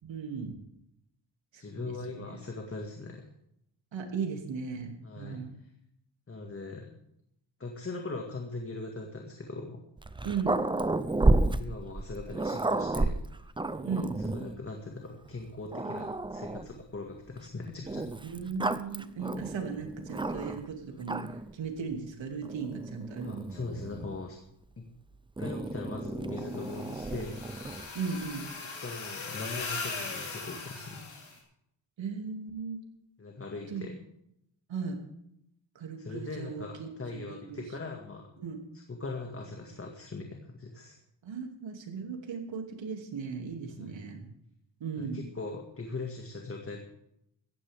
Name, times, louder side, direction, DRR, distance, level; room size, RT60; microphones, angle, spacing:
voice 1, 0.0-0.6 1.5-2.2 3.9-5.5 10.2-10.6 13.8-14.1 18.2-21.2 21.5-23.5 27.9-28.4 32.0-32.8 33.7-33.8 34.7-35.0 35.7-37.6 38.4-38.6 41.2-44.3 44.8-45.2, right 5 dB, 85° right, 3 dB, 2.8 m, -37 dB
voice 2, 1.6-3.3 5.0-5.4 6.3-6.9 7.6-9.8 11.6-13.2 14.2-18.1 23.2-24.4 24.8-24.9 25.4-27.4 28.8-31.0 33.2-33.9 36.0-38.2 38.7-41.0 43.7-44.0 44.9-46.8, left 3 dB, 30° left, 2 dB, 2.0 m, -40 dB
Growling, 10.0-14.6 15.3-15.4 15.7-16.8 17.9-20.7 21.0-21.5 22.4-24.2 25.4-27.9, right 2 dB, 10° right, 0.6 m, -31 dB
sound 1, 26.4-31.3, left 4 dB, 90° left, 6.7 m, -39 dB
17.5 x 14.5 x 3.6 m, 0.77 s
wide cardioid pair, 110°, 44 cm